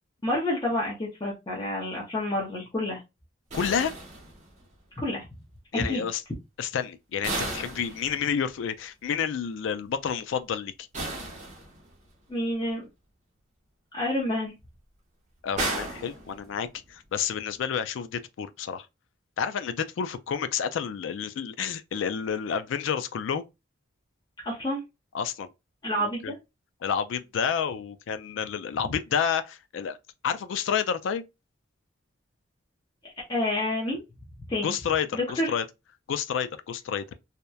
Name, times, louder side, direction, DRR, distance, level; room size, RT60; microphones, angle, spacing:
voice 1, 0.2-3.0 4.9-5.3 5.7-6.0 12.3-12.8 13.9-14.5 24.4-24.8 25.8-26.4 28.9-29.0 33.3-34.0 34.5-34.7 35.1-35.5, left 1 dB, 20° left, 0.6 m, -28 dB
voice 2, 3.5-3.9 5.7-6.2 6.6-10.7 15.4-18.9 19.4-23.5 25.1-25.5 26.0-26.3 26.8-30.0 30.2-31.2 34.6-35.6 36.1-37.0, left 7 dB, 75° left, 0.3 m, -29 dB
sound 1, 3.5-4.8 7.2-8.6 10.9-12.1 15.6-16.9, right 2 dB, 35° right, 0.7 m, -34 dB
2.8 x 2.1 x 2.2 m
head